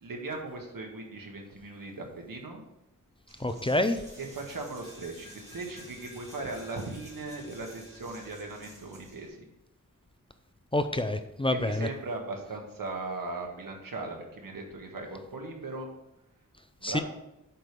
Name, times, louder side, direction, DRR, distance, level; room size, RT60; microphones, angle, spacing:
voice 1, 0.0-2.6 4.2-9.4 11.5-15.9 16.8-17.0, right 3 dB, 90° right, 2 dB, 1.6 m, -38 dB
Coin (dropping), 3.3-9.3, equal, 20° right, 2.3 m, -51 dB
voice 2, 3.4-4.0 10.7-11.9 16.8-17.0, left 1 dB, 15° left, 9 dB, 0.5 m, -27 dB
7.8 x 5.0 x 5.2 m, 0.88 s
wide cardioid pair, 115°, 33 cm